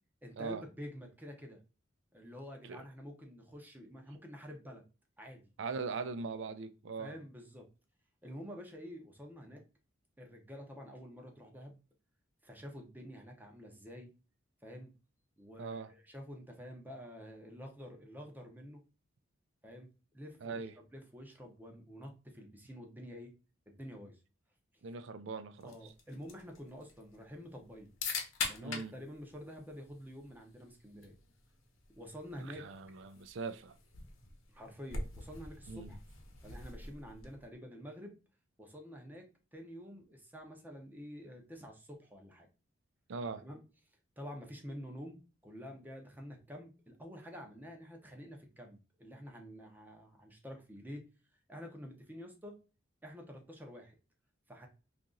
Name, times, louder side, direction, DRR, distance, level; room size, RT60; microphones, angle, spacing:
voice 1, 0.2-1.6 2.1-4.8 5.2-5.4 7.0-7.7 8.2-9.6 10.2-11.8 12.4-14.1 14.6-14.9 15.4-18.8 19.6-23.3 23.7-24.2 24.9-25.0 25.6-27.9 28.5-31.1 32.0-32.6 34.5-36.0 36.4-38.2 38.6-42.5 43.4-43.6 44.2-51.0 51.5-52.6 53.0-54.0 54.5-54.7, equal, 10° right, 0.6 m, -48 dB
voice 2, 5.6-7.1 15.6-15.9 20.4-20.7 24.8-25.8 28.6-28.9 32.6-33.8 35.7-35.9 43.1-43.4, right 4 dB, 65° right, 0.4 m, -40 dB
sound 1, 25.6-37.5, left 4 dB, 85° left, 0.9 m, -45 dB
2.9 x 2.5 x 3.7 m
head